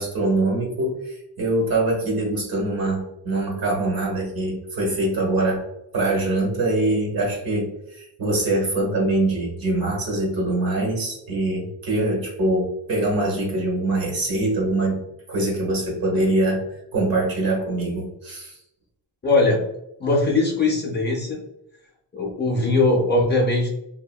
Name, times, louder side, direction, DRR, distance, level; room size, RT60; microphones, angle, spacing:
voice 1, 0.0-5.6 5.9-15.0 15.3-16.6 16.9-18.6, right 2 dB, 55° right, -2 dB, 1.2 m, -23 dB
voice 2, 19.2-19.6 20.0-21.4 22.1-23.7, left 2 dB, 25° left, -3 dB, 0.5 m, -20 dB
2.9 x 2.5 x 2.2 m, 0.84 s
wide cardioid pair, 160°, 43 cm